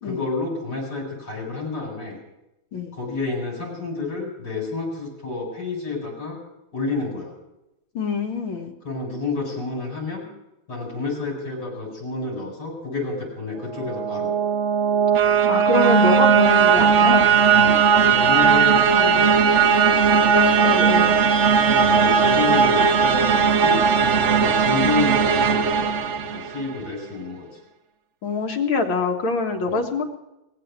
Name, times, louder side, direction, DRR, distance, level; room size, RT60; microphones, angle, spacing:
voice 1, 0.0-2.2 2.9-6.4 6.7-7.3 8.8-10.2 10.7-14.3 17.5-19.5 21.4-25.9 26.2-27.5 29.7-29.8, left 3 dB, 55° left, 0 dB, 5.4 m, -29 dB
voice 2, 7.9-8.7 15.5-17.2 20.3-21.2 28.2-30.1, left 3 dB, 85° left, 3 dB, 2.3 m, -24 dB
sound 1, 13.7-26.7, right 6 dB, 55° right, 0.8 m, -18 dB
19.0 x 7.7 x 8.0 m, 0.93 s
omnidirectional pair, 2.1 m